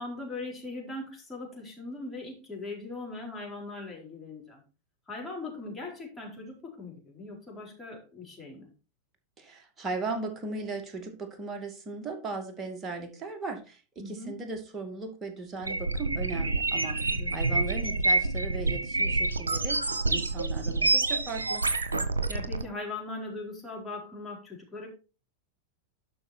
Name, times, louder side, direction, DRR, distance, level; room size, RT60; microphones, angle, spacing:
voice 1, 0.0-4.6 5.1-8.7 14.0-14.4 17.1-17.3 22.3-24.9, left 2 dB, 10° left, -3 dB, 4.4 m, -40 dB
voice 2, 9.4-21.6, right 3 dB, 20° right, 4 dB, 2.4 m, -37 dB
sound 1, 15.6-22.6, right 2 dB, 75° right, 1.0 m, -27 dB
11.5 x 5.9 x 4.4 m, 0.33 s
figure-of-eight pair, 90°, 0 cm